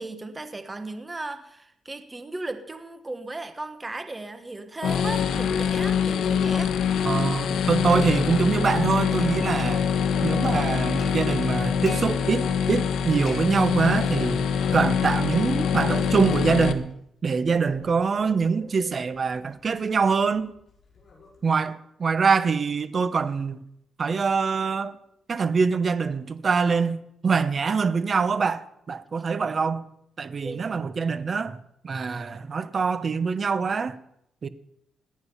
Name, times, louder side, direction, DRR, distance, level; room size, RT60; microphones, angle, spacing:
voice 1, 0.0-6.8 30.4-30.6, right 2 dB, 15° right, 1.4 m, -36 dB
sound 1, 4.8-16.7, left 7 dB, 75° left, 1.2 m, -24 dB
Plucked string instrument, 6.4-7.0 7.3-7.5 7.9-9.9 10.2-12.0 12.4-12.9 13.2-14.2 14.6-16.1 16.3-16.8 17.2-21.5, left 2 dB, 40° left, 5.7 m, -43 dB
voice 2, 7.0-9.9 10.2-14.4 14.7-17.0 17.2-20.5 21.4-23.6 24.0-24.9 25.3-29.9 30.2-31.6 31.8-33.9 34.4-34.5, right 5 dB, 35° right, 1.0 m, -24 dB
18.0 x 12.0 x 5.6 m
cardioid pair, 135°, 0 cm